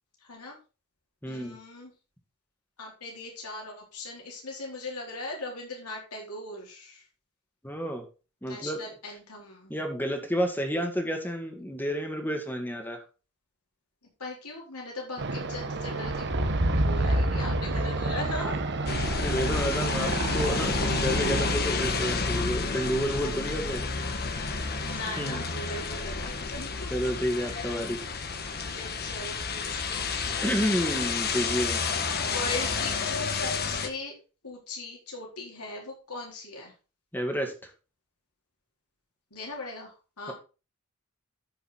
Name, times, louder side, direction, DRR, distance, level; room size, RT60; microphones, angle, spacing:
voice 1, 0.2-0.6 1.3-1.9 2.8-7.0 8.4-9.8 14.2-16.3 16.8-18.9 19.4-20.1 24.8-27.0 27.4-27.9 28.4-30.4 31.2-31.7 32.0-34.1 34.4-36.7 39.3-40.3, left 2 dB, 80° left, -1 dB, 4.1 m, -40 dB
voice 2, 1.2-1.6 7.6-8.0 8.4-8.8 9.7-13.0 19.2-23.8 24.9-25.4 26.9-28.0 30.4-31.8 37.1-37.5, equal, 10° left, 4 dB, 1.9 m, -30 dB
sound 1, 15.2-21.5, right 3 dB, 50° right, 1.1 m, -32 dB
sound 2, 16.2-20.8, right 1 dB, 70° right, 2.0 m, -29 dB
sound 3, 18.9-33.9, left 4 dB, 45° left, 1.3 m, -30 dB
13.0 x 5.7 x 4.2 m, 0.33 s
head